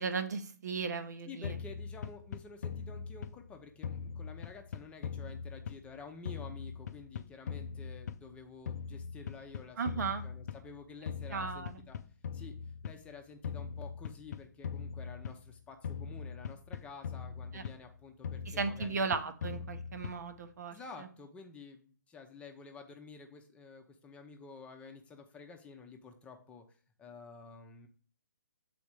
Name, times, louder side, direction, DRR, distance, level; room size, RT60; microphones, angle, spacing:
voice 1, 0.0-1.6 9.8-10.2 11.3-11.8 17.5-17.6 18.5-21.1, right 5 dB, 65° right, 8 dB, 1.0 m, -36 dB
voice 2, 1.2-12.0 12.3-12.5 12.8-19.1 20.7-27.9, left 4 dB, 10° left, 4 dB, 0.8 m, -51 dB
sound 1, 1.4-3.5 3.8-6.0 6.3-8.4 8.7-10.8 11.1-13.0 13.4-15.5 15.8-17.9 18.2-20.4, left 6 dB, 60° left, 0.5 m, -41 dB
7.1 x 4.2 x 4.7 m, 0.42 s
figure-of-eight pair, 135°, 10 cm